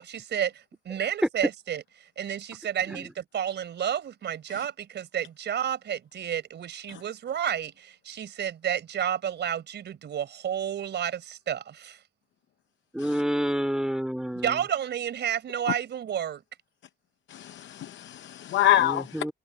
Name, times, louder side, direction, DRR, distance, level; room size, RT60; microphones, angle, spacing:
voice 1, 0.0-1.8 2.2-12.0 14.4-16.4, right 9 dB, 60° right, 4.5 m, -31 dB
voice 2, 12.9-14.6 18.8-19.3, equal, 5° right, 3.4 m, -28 dB
voice 3, 17.3-19.3, left 13 dB, 70° left, 0.8 m, -25 dB
cardioid pair, 90°, 20 cm